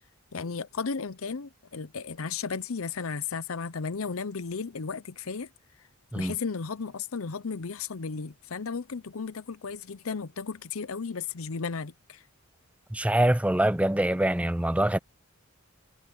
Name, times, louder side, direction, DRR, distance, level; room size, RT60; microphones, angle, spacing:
voice 1, 0.3-5.5 6.1-12.2, left 5 dB, 75° left, 0.7 m, -34 dB
voice 2, 12.9-15.0, right 1 dB, 5° right, 0.6 m, -24 dB
head